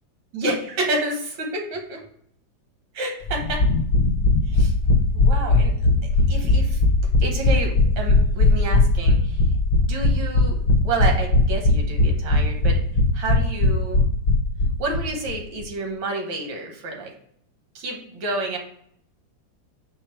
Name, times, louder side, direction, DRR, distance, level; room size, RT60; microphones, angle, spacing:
voice 1, 0.3-2.0 2.9-3.6 4.5-4.7 5.1-5.7 6.3-6.8 7.2-9.4 9.8-10.6 10.8-12.8 13.1-14.1 14.8-17.1 17.7-18.6, right 2 dB, 85° right, 2 dB, 1.8 m, -29 dB
sound 1, 3.3-15.0 15.3-15.4 15.6-15.7, left 2 dB, 60° left, 0.9 m, -19 dB
5.0 x 2.3 x 4.3 m, 0.67 s
omnidirectional pair, 2.0 m